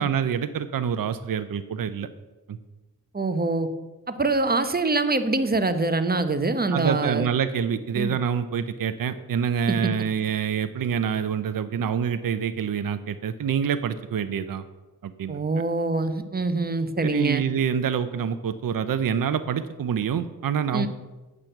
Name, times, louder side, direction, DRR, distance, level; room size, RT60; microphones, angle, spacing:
voice 1, 0.0-2.1 2.5-2.6 6.7-14.6 15.0-15.4 17.0-20.9, right 7 dB, 60° right, 11 dB, 0.6 m, -26 dB
voice 2, 3.1-3.7 4.1-7.3 7.9-8.1 9.7-9.9 15.3-17.4 20.7-20.9, right 3 dB, 25° right, 10 dB, 0.9 m, -24 dB
8.8 x 6.1 x 7.7 m, 1.1 s
cardioid pair, 70°, 37 cm